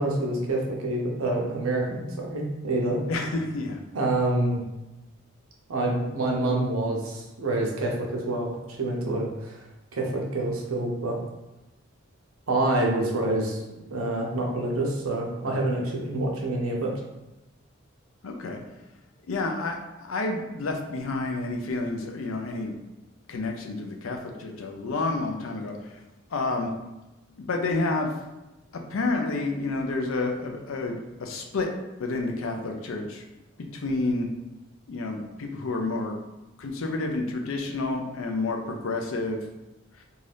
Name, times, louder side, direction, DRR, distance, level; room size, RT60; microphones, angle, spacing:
voice 1, 0.0-3.0 3.9-4.6 5.7-9.5 9.9-11.2 12.5-13.6 13.9-16.9, right 2 dB, 80° right, -1 dB, 0.7 m, -27 dB
voice 2, 3.1-3.8 18.2-18.6 19.3-22.7 23.3-26.0 26.3-26.7 27.4-28.1 28.9-31.7 32.0-33.3 33.6-34.3 34.9-36.2 36.6-39.4, left 3 dB, 70° left, 3 dB, 0.4 m, -29 dB
2.6 x 2.4 x 3.3 m, 1.0 s
head